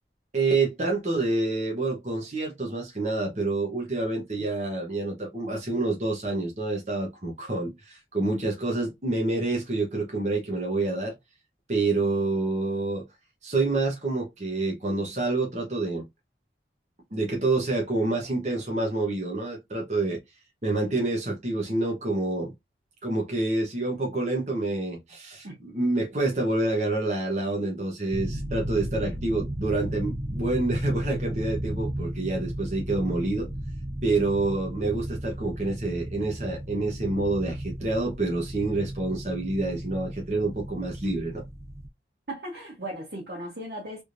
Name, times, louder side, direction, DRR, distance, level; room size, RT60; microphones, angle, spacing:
voice 1, 0.3-11.2 11.7-13.1 13.4-16.0 17.1-20.2 20.6-22.5 23.0-33.5 34.0-41.4, right 2 dB, 40° right, 1.1 m, -27 dB
sound 1, 28.1-41.9, right 1 dB, 20° right, 0.4 m, -35 dB
voice 2, 42.3-44.0, right 1 dB, 65° right, 1.6 m, -37 dB
3.5 x 3.0 x 2.6 m
head